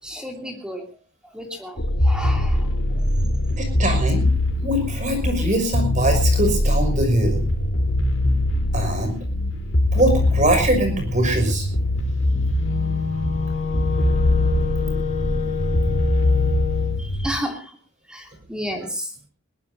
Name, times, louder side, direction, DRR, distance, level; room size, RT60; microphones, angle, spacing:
voice 1, 0.0-0.9 1.2-3.0 17.0-17.8 18.1-19.1, equal, 5° right, 3 dB, 2.9 m, -32 dB
sound 1, 1.8-17.3, left 1 dB, 65° left, 3.8 m, -22 dB
voice 2, 3.6-4.3 4.6-7.5 8.7-9.2 9.9-11.7, right 1 dB, 35° right, 6 dB, 5.9 m, -22 dB
Wind instrument woodwind instrument, 12.5-17.0, left 7 dB, 30° left, 2.6 m, -28 dB
21.5 x 20.5 x 2.7 m, 0.34 s
head